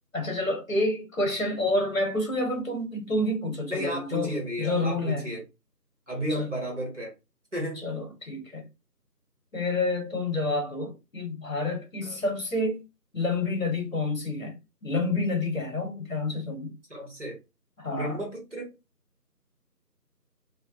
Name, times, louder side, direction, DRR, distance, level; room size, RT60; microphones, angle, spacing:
voice 1, 0.1-5.3 6.4-6.5 7.8-8.6 9.5-12.8 13.1-16.7 17.8-18.2, left 2 dB, 55° left, 0.9 m, -29 dB
voice 2, 3.7-5.4 6.1-7.1 7.5-7.9 12.0-12.1 16.9-17.4 17.9-18.7, equal, 45° right, 1.0 m, -33 dB
2.6 x 2.2 x 2.3 m
figure-of-eight pair, 180°, 49 cm